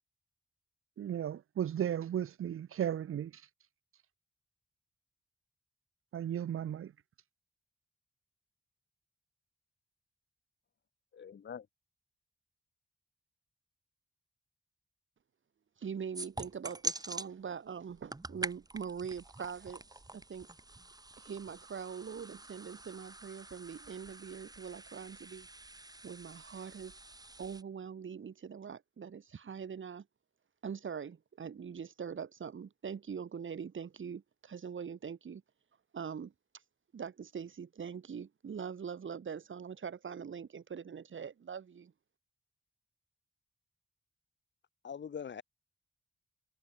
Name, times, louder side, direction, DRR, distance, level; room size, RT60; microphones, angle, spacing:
voice 1, 1.0-3.3 6.1-6.9, right 10 dB, 85° right, 0.7 m, -35 dB
voice 2, 11.1-11.7 44.8-45.4, left 7 dB, 60° left, 1.0 m, -43 dB
voice 3, 15.8-19.8 20.1-20.5 21.2-25.5 26.0-27.0 27.4-30.0 30.6-35.4 35.9-36.3 36.9-41.9, right 7 dB, 70° right, 2.4 m, -43 dB
sound 1, 16.1-17.3 17.9-27.6, right 2 dB, 20° right, 1.8 m, -45 dB
wide cardioid pair, 100°, 21 cm